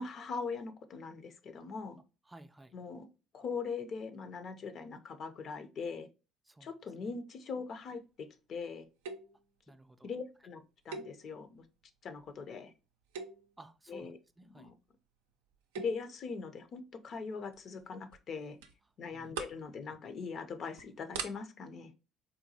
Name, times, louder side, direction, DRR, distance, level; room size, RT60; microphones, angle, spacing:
voice 1, 0.0-2.0 2.7-3.1 3.3-6.1 6.6-8.9 10.0-10.6 10.9-11.6 12.0-12.7 13.9-14.2 14.6-14.7 15.8-18.6 19.0-21.9, left 5 dB, 55° left, 0.5 m, -41 dB
voice 2, 2.3-2.8 6.5-6.7 7.0-7.1 9.7-10.1 13.6-14.7 19.1-19.3, right 1 dB, 15° right, 0.3 m, -55 dB
sound 1, 9.0-9.4 10.9-11.6 12.2-12.4 13.0-13.6 15.5-16.1 17.5-17.8 18.1-18.2 18.6-18.7 19.1-19.7 20.1-20.3 20.8-20.9 21.1-21.3, right 5 dB, 90° right, 0.4 m, -42 dB
3.8 x 2.2 x 2.7 m
hypercardioid pair, 60°, 0 cm